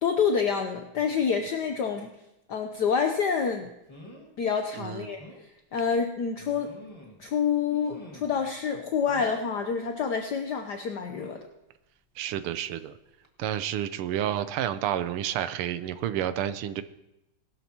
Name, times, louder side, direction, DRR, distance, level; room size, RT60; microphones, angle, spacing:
voice 1, 0.0-2.1 2.5-3.7 4.4-5.2 5.7-6.7 7.2-11.4, left 6 dB, 60° left, 4 dB, 1.2 m, -27 dB
sound 1, 2.9-3.1 3.9-4.3 4.7-4.8 5.2-5.4 6.4-7.3 7.7-8.4 9.1-9.5 11.1-11.5 12.7-12.9 13.2-13.3, equal, 15° left, 1.8 m, -48 dB
voice 2, 4.8-5.1 12.2-13.0 13.4-16.8, right 11 dB, 85° right, 11 dB, 1.6 m, -30 dB
20.0 x 12.5 x 2.9 m, 0.91 s
omnidirectional pair, 2.4 m